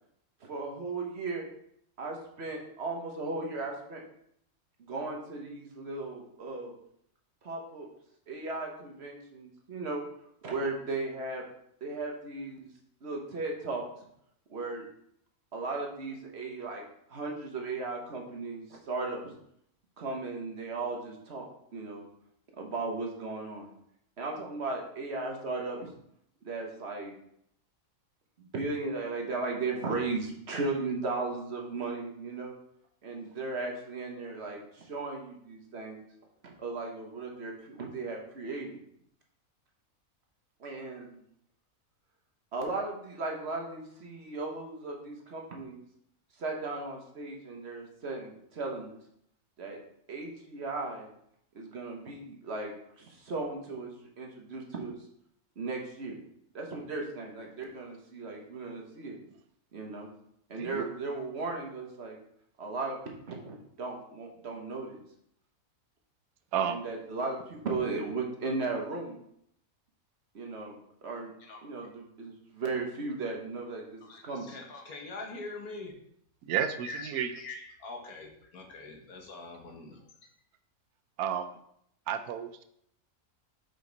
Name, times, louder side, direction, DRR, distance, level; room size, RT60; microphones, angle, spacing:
voice 1, 0.4-1.5 2.0-4.0 4.8-6.7 7.4-7.9 8.3-10.0 10.4-11.4 11.8-12.7 13.0-13.8 14.5-14.8 15.5-16.8 17.1-19.3 20.0-21.5 21.7-22.1 22.6-23.7 24.2-25.9 26.4-27.1 28.4-32.6 33.0-36.0 36.4-38.8 40.6-41.2 42.5-45.8 46.4-48.9 49.6-49.8 50.1-51.1 51.5-54.9 55.6-56.2 56.5-59.2 59.7-60.1 60.5-62.2 62.6-65.0 66.7-69.2 70.3-71.3 71.6-74.5, right 3 dB, 50° right, 0 dB, 1.3 m, -36 dB
voice 2, 66.5-66.9 76.4-77.3 81.2-81.6 82.1-82.6, right 8 dB, 85° right, 9 dB, 1.1 m, -31 dB
voice 3, 71.4-71.9 74.0-75.9 76.8-80.1, left 3 dB, 90° left, 1 dB, 1.6 m, -44 dB
5.2 x 5.2 x 3.9 m, 0.72 s
omnidirectional pair, 1.5 m